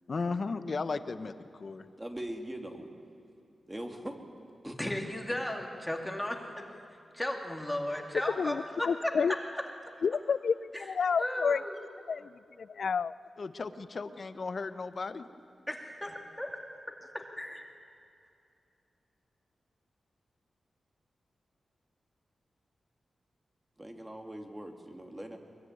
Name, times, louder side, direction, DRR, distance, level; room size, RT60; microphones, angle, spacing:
voice 1, 0.1-1.9 13.4-15.3, left 4 dB, 50° left, 10 dB, 1.1 m, -35 dB
voice 2, 2.0-2.9 3.7-4.2 4.6-4.8 23.8-25.4, right 1 dB, 15° right, 3 dB, 2.6 m, -41 dB
voice 3, 4.6-6.8 7.1-9.6 10.7-11.8 15.7-16.5 17.1-17.7, left 1 dB, 5° left, 1 dB, 2.4 m, -35 dB
voice 4, 8.4-9.3 10.0-11.6 12.1-12.2 12.8-13.1, left 6 dB, 65° left, 17 dB, 0.5 m, -29 dB
22.5 x 22.5 x 9.6 m, 2.6 s
wide cardioid pair, 100°, 0 cm